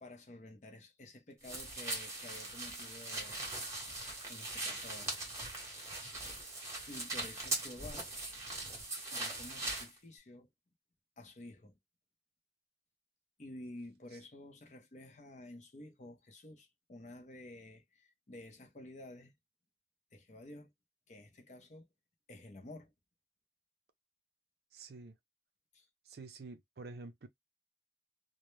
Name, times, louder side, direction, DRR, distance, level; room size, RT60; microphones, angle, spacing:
voice 1, 0.0-3.4 4.3-5.2 6.9-8.1 9.1-10.5 11.2-11.8 13.4-19.3 20.1-20.7 21.1-21.9 22.3-22.9 25.7-25.9, left 1 dB, 40° left, 0.6 m, -51 dB
sound 1, 1.4-9.9, right 2 dB, 15° right, 0.9 m, -40 dB
voice 2, 24.7-25.1 26.1-27.3, right 3 dB, 65° right, 0.5 m, -48 dB
2.1 x 2.1 x 3.0 m
head